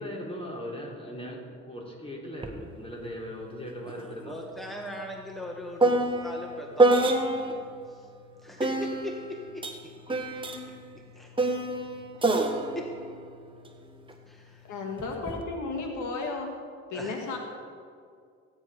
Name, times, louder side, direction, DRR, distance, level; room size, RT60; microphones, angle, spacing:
voice 1, 0.0-4.4, equal, 20° left, -2 dB, 3.7 m, -39 dB
sound 1, 2.4-2.6 2.9-7.7 8.6-14.1 15.0-15.4, right 2 dB, 15° right, 1.4 m, -28 dB
voice 2, 3.8-7.6 7.9-8.0 8.4-10.4 11.1-11.5 12.7-12.9 14.3-14.7 16.9-17.1, left 1 dB, ahead, 1 dB, 1.4 m, -40 dB
voice 3, 14.7-16.5 16.9-17.4, left 3 dB, 80° left, 2 dB, 1.8 m, -33 dB
15.5 x 9.7 x 5.0 m, 2.2 s
cardioid pair, 90°, 30 cm